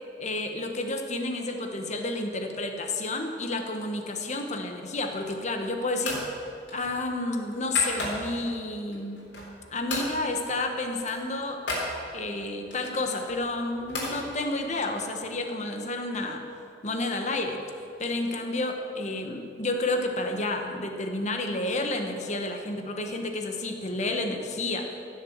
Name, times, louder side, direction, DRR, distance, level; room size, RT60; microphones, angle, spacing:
voice 1, 0.2-6.2 6.7-9.2 9.7-11.6 12.1-16.4 16.8-17.6 18.0-25.0, left 2 dB, 40° left, 4 dB, 1.3 m, -30 dB
sound 1, 5.1-5.5 6.0-6.3 6.7-8.5 8.9-9.6 9.9-10.1 10.4-10.6 10.8-11.9 12.7-14.2, left 2 dB, 85° left, 3.7 m, -35 dB
15.5 x 7.5 x 7.4 m, 2.6 s
head